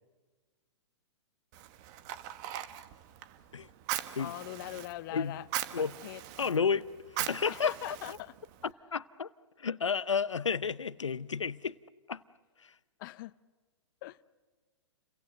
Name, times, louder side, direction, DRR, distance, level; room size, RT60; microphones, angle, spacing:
Fire, 1.5-8.7, right 12 dB, 40° right, 1.5 m, -41 dB
voice 1, 4.2-5.5 6.0-6.8 7.5-8.3 13.0-13.3 14.0-14.2, left 17 dB, 45° left, 0.7 m, -42 dB
voice 2, 6.4-6.9 7.1-8.2 8.9-9.3 9.6-11.8 12.1-12.2 12.6-12.7, left 6 dB, 85° left, 0.7 m, -31 dB
29.5 x 23.5 x 7.7 m
hypercardioid pair, 115°, 15 cm